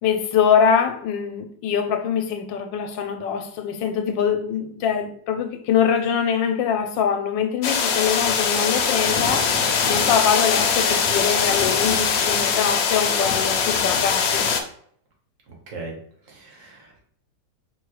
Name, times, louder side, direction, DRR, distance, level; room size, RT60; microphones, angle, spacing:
voice 1, 0.0-14.5, left 7 dB, 85° left, 7 dB, 1.3 m, -23 dB
sound 1, 7.6-14.6, left 6 dB, 65° left, 0.9 m, -21 dB
voice 2, 15.5-16.0 16.2-17.1, right 3 dB, 50° right, 0 dB, 1.4 m, -39 dB
4.6 x 2.3 x 4.7 m, 0.63 s
omnidirectional pair, 2.0 m